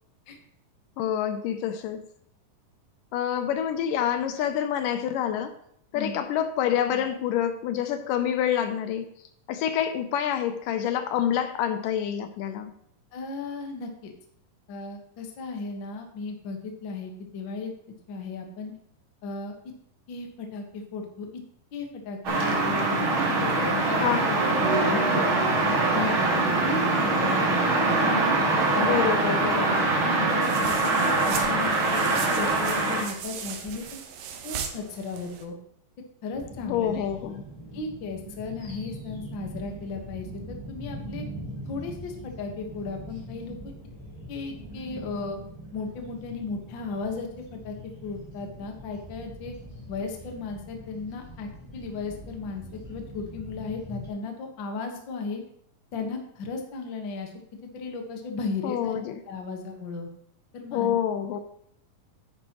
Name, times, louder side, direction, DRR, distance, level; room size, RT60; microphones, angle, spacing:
voice 1, 1.0-2.1 3.1-5.5 5.9-9.1 9.5-12.7 24.0-24.4 28.8-30.0 36.6-37.4 58.6-59.2 60.7-61.4, left 9 dB, 80° left, 9 dB, 2.2 m, -27 dB
voice 2, 13.1-14.1 14.7-17.7 18.1-18.7 19.2-19.5 20.1-21.4 21.7-22.9 23.3-24.0 24.9-25.4 25.7-28.4 28.7-29.1 30.0-31.2 31.4-34.0 34.4-35.6 36.2-37.1 37.7-41.2 41.7-43.7 44.3-45.4 45.7-47.7 48.0-49.5 49.9-55.4 55.9-57.3 57.6-59.0 59.3-60.1 60.5-61.0, left 4 dB, 55° left, 3 dB, 1.4 m, -35 dB
sound 1, 22.2-33.0, right 3 dB, 45° right, 1.9 m, -23 dB
sound 2, 30.4-35.4, right 8 dB, 80° right, 2.7 m, -37 dB
sound 3, 36.3-54.1, equal, 10° left, 3.4 m, -42 dB
9.9 x 9.6 x 3.0 m, 0.70 s
omnidirectional pair, 4.0 m